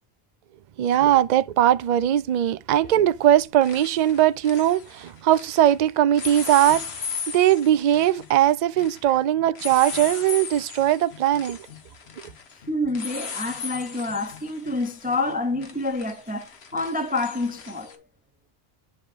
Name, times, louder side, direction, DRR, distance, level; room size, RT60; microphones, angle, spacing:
voice 1, 0.8-6.8 7.3-11.6, right 12 dB, 55° right, 0.5 m, -20 dB
sound 1, 0.9-1.0 2.8-3.0 3.3-5.8 6.1-18.0, left 6 dB, 90° left, 1.4 m, -38 dB
voice 2, 12.7-18.0, left 2 dB, 10° right, 0.6 m, -28 dB
9.8 x 3.7 x 4.9 m
omnidirectional pair, 1.0 m